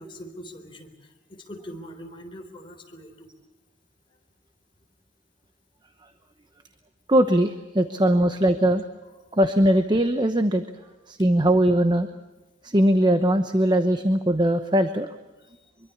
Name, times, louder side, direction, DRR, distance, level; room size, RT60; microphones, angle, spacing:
voice 1, 0.0-3.3 7.9-8.0 10.8-10.9 15.4-15.7, equal, 25° left, 3 dB, 3.8 m, -43 dB
voice 2, 7.1-8.8 9.4-10.6 11.1-12.1 12.6-15.1, right 1 dB, 25° right, 8 dB, 0.9 m, -20 dB
24.5 x 23.5 x 7.2 m, 1.1 s
head